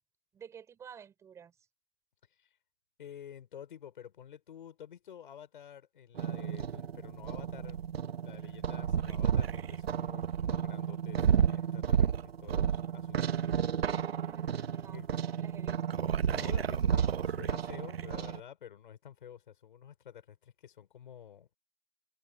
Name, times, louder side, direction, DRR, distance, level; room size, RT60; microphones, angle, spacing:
voice 1, 0.3-1.5 14.2-15.8, right 7 dB, 10° right, 6.6 m, -52 dB
voice 2, 3.0-7.9 8.2-12.1 12.4-13.4 14.0-14.1 14.9-15.1 16.2-21.5, left 9 dB, 55° left, 6.9 m, -50 dB
sound 1, 6.1-18.4, right 8 dB, 80° right, 1.4 m, -31 dB
hypercardioid pair, 170°, 30 cm